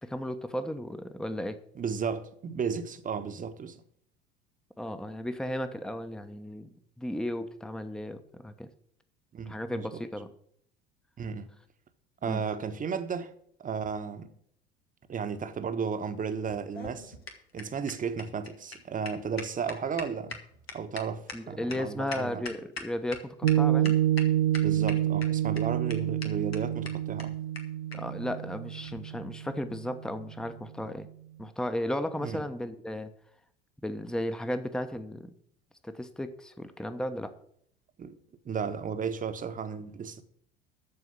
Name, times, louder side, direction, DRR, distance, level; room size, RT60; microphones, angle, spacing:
voice 1, 0.0-1.6 4.8-6.7 7.0-8.7 9.5-10.3 12.2-12.4 21.3-23.9 27.9-31.1 31.4-33.1 33.8-35.3 35.8-37.3, left 1 dB, ahead, 1.0 m, -35 dB
voice 2, 1.7-3.8 9.3-10.0 11.2-11.5 12.2-13.3 13.6-14.3 15.1-17.1 17.5-20.4 20.7-22.5 24.6-27.3 32.2-32.4 38.0-38.2 38.4-40.2, right 6 dB, 25° right, 1.2 m, -34 dB
sound 1, 16.5-23.2 23.5-23.6 23.8-24.2 24.5-25.2 25.6-25.7 25.9-26.0 26.2-26.3 26.5-26.6 26.8-26.9 27.2-27.3 27.5-27.6 27.9-28.0 28.8-29.0, left 3 dB, 85° left, 1.6 m, -40 dB
Piano, 23.4-30.1, right 12 dB, 75° right, 0.6 m, -28 dB
13.5 x 4.8 x 8.2 m
figure-of-eight pair, 70°, 29 cm